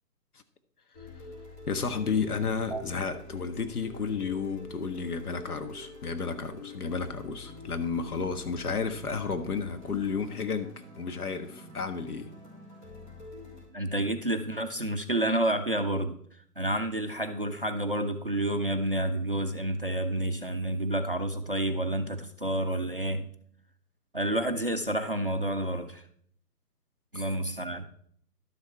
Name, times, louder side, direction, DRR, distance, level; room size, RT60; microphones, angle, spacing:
sound 1, 0.9-13.7, left 2 dB, 30° left, 3.6 m, -46 dB
voice 1, 1.7-12.3, left 5 dB, 65° left, 8 dB, 1.5 m, -32 dB
voice 2, 13.7-16.2 16.6-23.3 24.1-26.0 27.1-27.9, right 1 dB, 35° right, 8 dB, 0.5 m, -29 dB
12.0 x 6.9 x 4.8 m, 0.64 s
hypercardioid pair, 165°, 48 cm